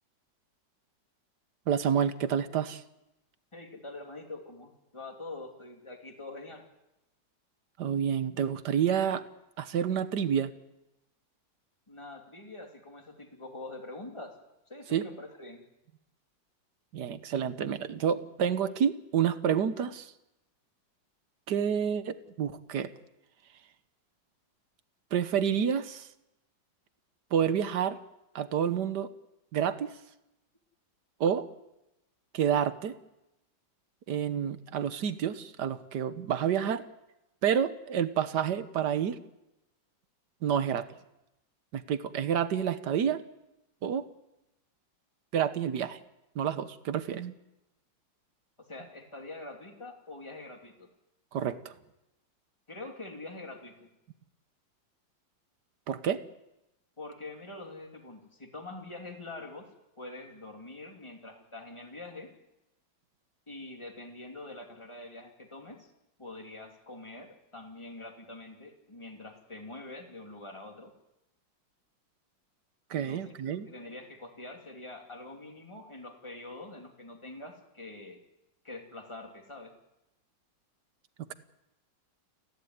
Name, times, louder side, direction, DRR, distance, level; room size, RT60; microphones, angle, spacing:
voice 1, 1.7-2.8 7.8-9.2 9.6-10.5 14.9-15.0 16.9-20.1 21.5-22.9 25.1-26.1 27.3-28.0 28.3-29.1 29.5-29.9 31.2-31.5 32.3-32.9 34.1-36.8 37.4-39.2 40.4-40.9 41.7-43.2 43.8-44.1 45.3-46.0 46.3-47.3 51.3-51.7 55.9-56.2 72.9-73.7, right 8 dB, 65° right, 12 dB, 1.6 m, -29 dB
voice 2, 3.5-6.7 11.9-14.3 14.7-15.6 48.6-50.9 52.7-53.9 57.0-59.7 60.0-62.3 63.5-65.9 66.2-70.9 72.9-78.2 78.6-79.7, left 2 dB, 15° left, 2 dB, 2.8 m, -45 dB
29.5 x 11.5 x 9.5 m, 0.92 s
omnidirectional pair, 2.0 m